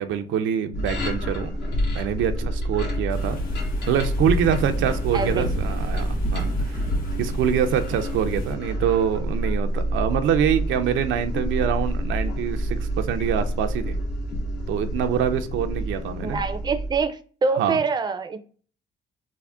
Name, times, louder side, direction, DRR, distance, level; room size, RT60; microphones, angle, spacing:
voice 1, 0.0-1.5 1.9-3.4 3.9-6.8 7.2-14.0 14.7-16.4 17.6-17.8, right 8 dB, 80° right, 8 dB, 0.4 m, -25 dB
sound 1, 0.7-17.0, equal, 60° left, 0.9 m, -28 dB
sound 2, 3.1-8.5, equal, 45° left, 1.5 m, -31 dB
voice 2, 5.1-5.5 16.2-18.4, right 4 dB, 20° right, 8 dB, 0.4 m, -25 dB
3.5 x 2.1 x 3.4 m, 0.41 s
cardioid pair, 90°, 20 cm